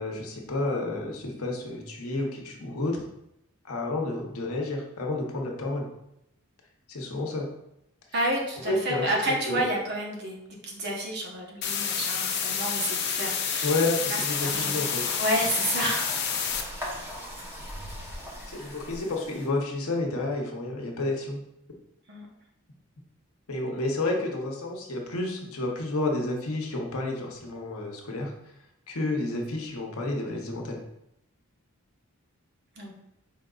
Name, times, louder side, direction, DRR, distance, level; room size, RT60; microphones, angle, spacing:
voice 1, 0.0-3.0 3.6-5.9 6.9-7.5 8.7-9.0 9.4-9.6 13.6-15.0 18.5-21.4 23.5-28.3 28.9-30.8, left 2 dB, 80° left, 1 dB, 0.9 m, -30 dB
voice 2, 8.1-10.4 10.6-13.7 14.1-16.2 16.6-16.7 22.1-22.3 32.8-32.9, right 1 dB, 50° right, 0 dB, 0.9 m, -30 dB
sound 1, 11.6-16.6, left 7 dB, 50° left, 0.5 m, -29 dB
sound 2, 14.3-19.5, equal, 10° right, 0.9 m, -39 dB
5.6 x 3.8 x 2.4 m, 0.80 s
head